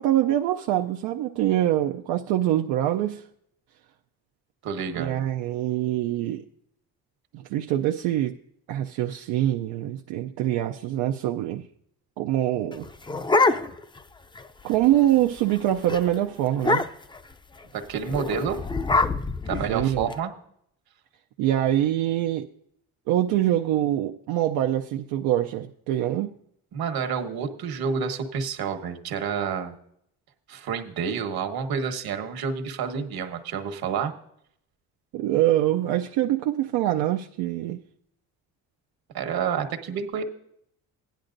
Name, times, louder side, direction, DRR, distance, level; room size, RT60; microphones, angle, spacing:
voice 1, 0.0-3.2 5.0-6.4 7.3-8.4 8.7-11.6 12.2-12.8 14.6-16.8 19.5-20.1 21.4-22.5 23.1-26.4 35.1-37.8, right 13 dB, 90° right, 3 dB, 0.6 m, -24 dB
voice 2, 4.6-5.2 17.7-18.6 19.5-20.3 26.7-29.8 30.5-34.1 39.1-40.2, right 6 dB, 70° right, 6 dB, 1.3 m, -29 dB
sound 1, 12.7-14.0 14.4-14.5 14.7-15.0 15.4-15.6 15.9-16.0 16.6-17.2 18.1-20.1, left 3 dB, 15° left, 0.4 m, -25 dB
16.0 x 10.5 x 2.6 m, 0.71 s
cardioid pair, 85°, 38 cm